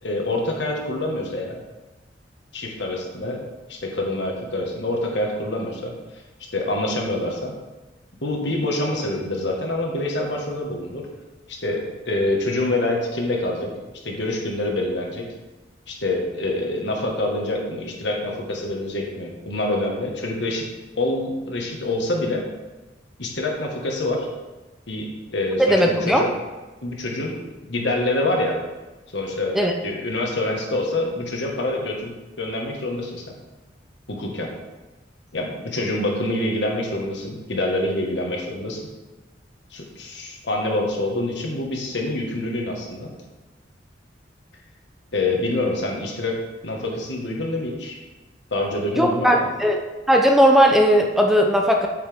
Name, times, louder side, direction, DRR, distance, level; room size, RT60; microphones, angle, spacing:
voice 1, 0.0-1.6 2.5-3.4 3.7-5.9 6.5-7.5 8.2-11.1 11.5-13.7 14.0-15.3 15.9-20.7 21.0-22.5 23.2-24.3 24.9-26.3 26.8-27.4 27.7-28.6 29.1-32.1 32.4-33.3 34.1-34.5 35.3-38.8 39.7-43.1 45.1-46.4 46.6-48.0 48.5-49.5, left 2 dB, 70° left, 0 dB, 1.7 m, -26 dB
voice 2, 25.6-26.3 29.5-29.7 49.0-49.8 50.1-51.9, equal, ahead, 2 dB, 0.6 m, -17 dB
8.5 x 8.3 x 3.6 m, 1.1 s
head